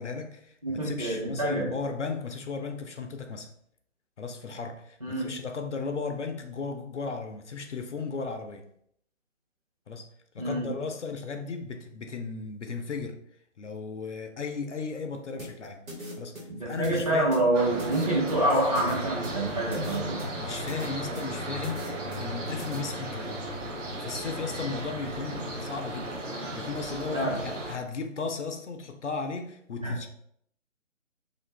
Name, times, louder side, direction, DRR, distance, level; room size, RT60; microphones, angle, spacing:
voice 1, 0.0-3.5 4.2-8.7 9.9-10.1 10.3-13.2 13.6-15.8 16.2-17.4 20.4-23.5 24.0-30.1, left 4 dB, 65° left, 0.5 m, -35 dB
voice 2, 0.6-1.7 5.0-5.3 10.4-10.7 16.5-20.3 27.1-27.4 29.8-30.1, right 1 dB, 30° right, 0.6 m, -27 dB
sound 1, 15.4-22.8, equal, 90° right, 1.3 m, -41 dB
sound 2, 17.5-27.7, right 1 dB, 65° right, 0.8 m, -35 dB
2.5 x 2.4 x 3.1 m
figure-of-eight pair, 150°, 39 cm